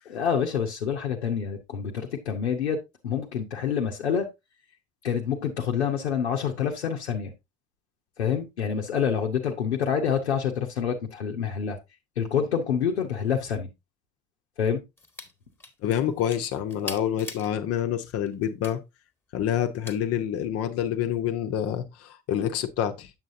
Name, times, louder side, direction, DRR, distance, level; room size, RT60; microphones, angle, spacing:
voice 1, 0.1-4.3 5.0-7.3 8.2-11.8 12.2-13.7 14.6-14.8, left 7 dB, 80° left, 0.8 m, -27 dB
sound 1, 15.0-15.3 15.6-17.5 18.0-18.7 19.8-20.0, left 2 dB, 5° left, 1.3 m, -41 dB
voice 2, 15.8-18.8 19.3-23.1, left 10 dB, 45° left, 0.9 m, -27 dB
7.5 x 7.3 x 2.6 m
figure-of-eight pair, 55°, 33 cm